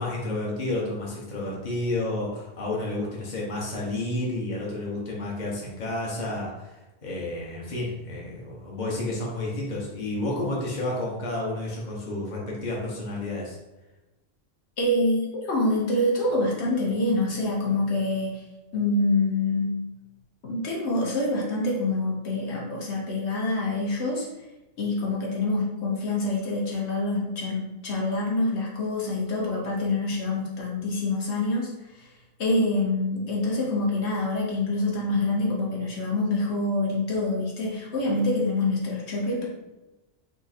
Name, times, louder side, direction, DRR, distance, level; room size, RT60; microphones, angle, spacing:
voice 1, 0.0-13.6, left 2 dB, 45° left, -4 dB, 1.1 m, -31 dB
voice 2, 14.8-18.3 18.7-19.8 20.4-24.3 24.8-31.7 32.4-39.5, left 2 dB, 80° left, -3 dB, 1.2 m, -26 dB
3.6 x 2.5 x 4.1 m, 1.0 s
omnidirectional pair, 1.1 m